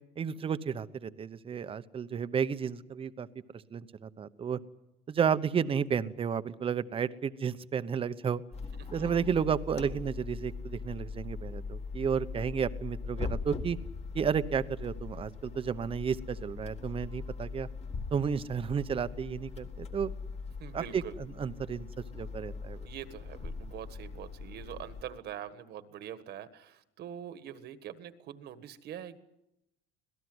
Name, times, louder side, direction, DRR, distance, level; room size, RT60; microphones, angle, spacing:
voice 1, 0.2-3.3 3.7-4.6 5.1-8.4 8.9-13.8 14.1-17.7 18.1-20.1 20.7-21.0 21.4-21.9 22.1-22.8, right 7 dB, 25° right, 14 dB, 0.9 m, -32 dB
sound 1, 8.5-25.0, left 4 dB, 30° left, 1.8 m, -41 dB
voice 2, 8.7-9.1 9.8-9.9 20.6-21.2 22.8-29.2, right 10 dB, 50° right, 11 dB, 1.6 m, -44 dB
26.0 x 18.0 x 8.0 m, 0.88 s
cardioid pair, 140°, 21 cm